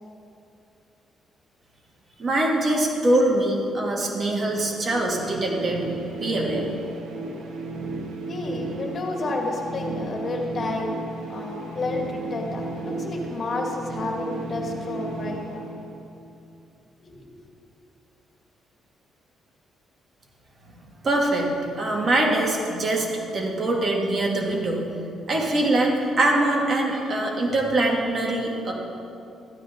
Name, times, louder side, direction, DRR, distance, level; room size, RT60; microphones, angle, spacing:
voice 1, 2.2-5.8 6.1-6.7 21.0-23.1 23.3-24.9 25.3-28.7, right 1 dB, 40° right, -1 dB, 2.2 m, -23 dB
sound 1, 4.4-16.3, right 2 dB, 90° right, 2.0 m, -34 dB
voice 2, 8.2-15.6 17.0-17.3, left 2 dB, 45° left, 1 dB, 2.0 m, -31 dB
14.0 x 12.0 x 3.9 m, 2.7 s
cardioid pair, 90°, 0 cm